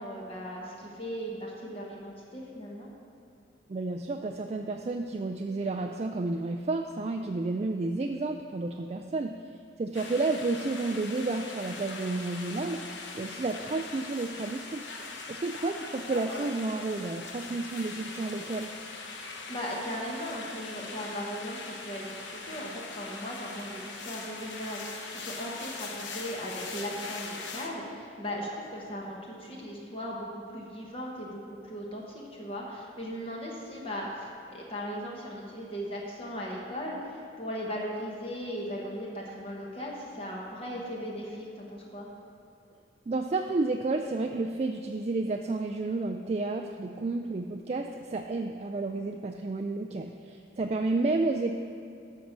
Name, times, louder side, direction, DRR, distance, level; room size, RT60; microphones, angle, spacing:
voice 1, 0.0-2.9 19.2-42.1, equal, 30° left, -2 dB, 1.2 m, -38 dB
voice 2, 3.7-12.8 13.1-18.7 43.1-51.5, right 3 dB, 35° right, 3 dB, 0.3 m, -31 dB
sound 1, 9.9-27.7, left 3 dB, 75° left, 0.9 m, -41 dB
13.0 x 4.6 x 6.6 m, 2.6 s
head